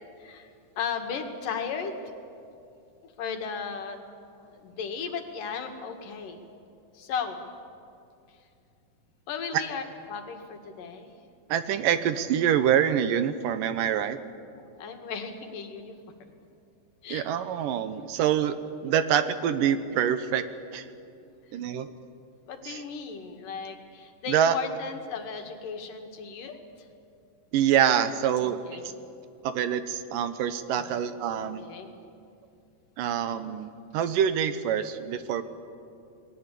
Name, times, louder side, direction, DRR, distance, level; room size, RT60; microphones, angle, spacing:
voice 1, 0.2-2.0 3.0-4.0 4.4-6.4 6.9-7.4 8.3-8.4 9.3-9.8 10.1-11.1 14.7-16.0 17.0-17.4 22.5-26.6 28.4-28.9 30.7-30.9 31.4-32.0, left 6 dB, 70° left, 5 dB, 3.5 m, -36 dB
voice 2, 11.5-14.2 17.1-18.6 18.8-20.4 20.7-20.9 21.5-21.9 22.6-22.8 24.3-24.6 27.5-28.8 29.4-31.7 33.0-35.4, right 9 dB, 75° right, 11 dB, 2.6 m, -25 dB
28.5 x 20.5 x 8.5 m, 2.6 s
omnidirectional pair, 4.0 m